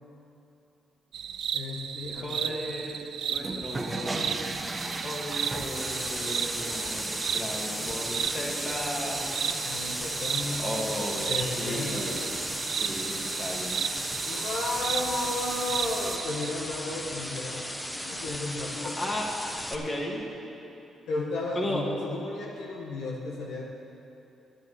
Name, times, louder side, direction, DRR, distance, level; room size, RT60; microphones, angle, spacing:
sound 1, 1.1-16.5, right 8 dB, 75° right, 0.5 m, -35 dB
voice 1, 1.5-2.7 9.6-10.7 11.3-12.4 14.2-17.7 18.0-19.2 21.1-23.6, left 2 dB, 80° left, -2 dB, 1.6 m, -34 dB
voice 2, 2.2-3.0 3.3-4.4 5.0-7.1 7.3-9.2 10.6-12.2 12.8-13.8 19.0-19.3 19.7-20.2 21.5-21.8, left 1 dB, 30° left, -2 dB, 2.7 m, -35 dB
sound 2, 3.3-16.2, right 2 dB, 20° right, 1.1 m, -36 dB
sound 3, 5.8-19.8, left 1 dB, 15° left, 1.2 m, -37 dB
12.0 x 7.6 x 8.2 m, 2.8 s
supercardioid pair, 65°, 0 cm